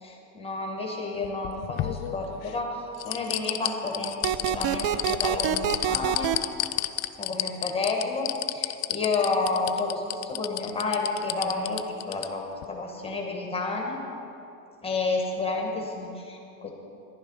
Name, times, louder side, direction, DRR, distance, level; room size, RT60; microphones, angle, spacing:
voice 1, 0.0-6.4 7.2-14.0 14.8-16.7, left 3 dB, 15° left, 1 dB, 1.2 m, -30 dB
sound 1, 1.2-2.6 3.0-12.3 12.6-12.7, left 17 dB, 45° left, 0.4 m, -30 dB
sound 2, 4.2-6.4, right 10 dB, 55° right, 0.5 m, -26 dB
11.0 x 10.5 x 5.3 m, 2.8 s
supercardioid pair, 140°, 40 cm